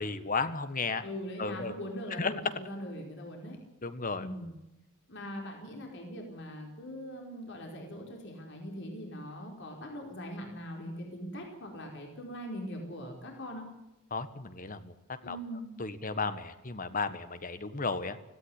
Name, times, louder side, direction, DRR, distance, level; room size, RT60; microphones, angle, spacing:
voice 1, 0.0-1.0 1.4-1.7 2.2-2.3 3.8-4.3 14.1-14.9 15.2-15.4 15.8-18.2, left 4 dB, 40° left, 12 dB, 1.5 m, -34 dB
voice 2, 1.0-3.6 4.2-4.5 5.1-13.7 15.2-15.7, equal, 60° left, 1 dB, 4.8 m, -41 dB
17.5 x 16.5 x 9.9 m, 0.95 s
head